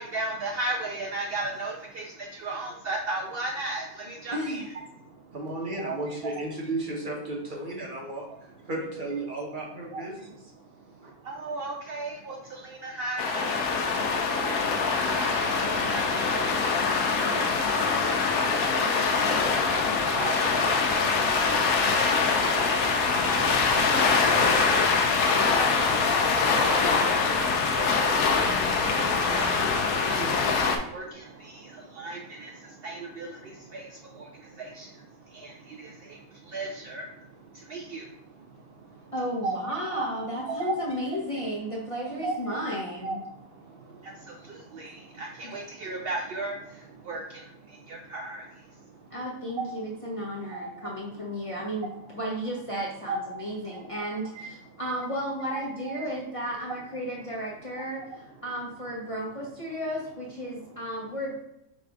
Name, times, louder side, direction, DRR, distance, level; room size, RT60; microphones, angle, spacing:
voice 1, 0.0-4.6 5.0-5.3 5.8-6.0 6.2-6.3 9.9-10.0 10.6-39.1 39.4-39.6 39.9-40.8 42.2-42.6 43.0-49.1 50.5-50.9 53.1-53.2 53.7-53.8 54.3-54.8 55.5-56.0, right 2 dB, 75° right, 0 dB, 0.5 m, -37 dB
voice 2, 4.3-4.7 39.1-43.2 45.4-45.5 49.1-61.4, equal, 30° left, -4 dB, 0.7 m, -33 dB
voice 3, 5.3-8.3 8.6-10.3 11.0-11.1, right 2 dB, 40° right, -2 dB, 1.0 m, -34 dB
sound 1, 13.2-30.8, left 4 dB, 75° left, 1.0 m, -24 dB
4.1 x 2.5 x 4.6 m, 0.81 s
omnidirectional pair, 1.5 m